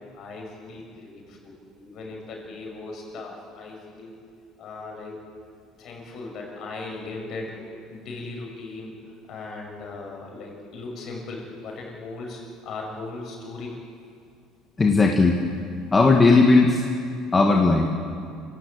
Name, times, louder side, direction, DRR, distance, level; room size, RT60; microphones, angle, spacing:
voice 1, 0.0-4.2 4.6-5.2 5.8-13.8, left 3 dB, 45° left, 1 dB, 6.6 m, -38 dB
voice 2, 14.8-15.4 15.9-16.8 17.3-17.9, left 3 dB, 15° left, 1 dB, 1.6 m, -17 dB
27.0 x 16.5 x 8.9 m, 2.4 s
cardioid pair, 150°, 0 cm